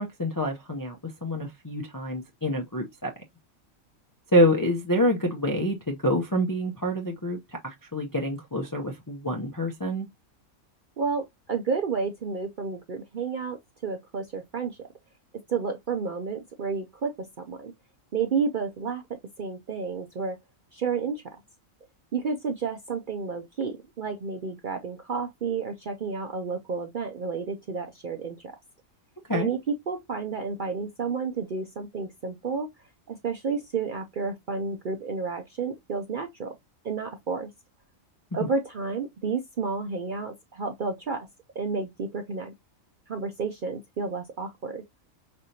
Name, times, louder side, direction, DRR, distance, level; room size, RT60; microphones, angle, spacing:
voice 1, 0.0-3.1 4.3-7.4 7.6-10.1 29.3-29.5, equal, 25° left, 0.4 m, -26 dB
voice 2, 11.0-14.8 15.5-17.7 18.1-19.0 19.4-20.4 20.7-21.2 22.1-28.5 29.3-32.7 33.1-36.5 36.8-37.5 38.3-41.3 41.6-42.5 43.1-44.8, right 5 dB, 55° right, 0.6 m, -31 dB
5.2 x 3.3 x 2.7 m
omnidirectional pair, 1.4 m